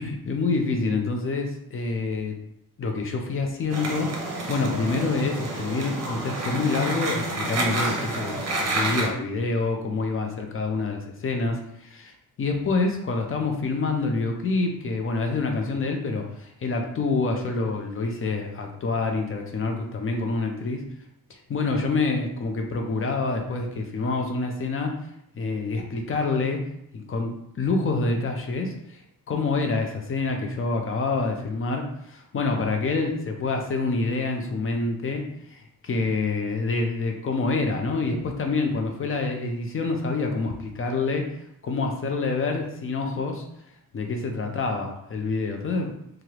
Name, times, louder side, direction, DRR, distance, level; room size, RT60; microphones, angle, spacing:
voice 1, 0.0-2.3 2.8-4.1 4.5-12.1 12.4-20.8 21.3-25.0 25.4-26.6 26.9-29.0 29.3-41.3 41.6-43.4 43.9-45.9, left 3 dB, 40° left, 3 dB, 0.5 m, -27 dB
sound 1, 3.7-9.1, right 2 dB, 45° right, 0.6 m, -29 dB
3.1 x 2.4 x 2.8 m, 0.76 s
wide cardioid pair, 165°, 36 cm